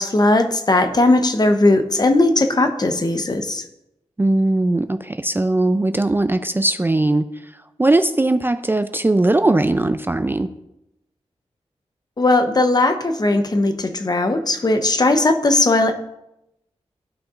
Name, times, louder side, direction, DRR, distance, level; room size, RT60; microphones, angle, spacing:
voice 1, 0.0-3.6 12.2-15.9, left 2 dB, 35° left, 7 dB, 0.8 m, -18 dB
voice 2, 4.2-7.3 7.8-10.5, right 2 dB, 20° right, 10 dB, 0.4 m, -19 dB
13.5 x 5.8 x 2.5 m, 0.87 s
wide cardioid pair, 65°, 12 cm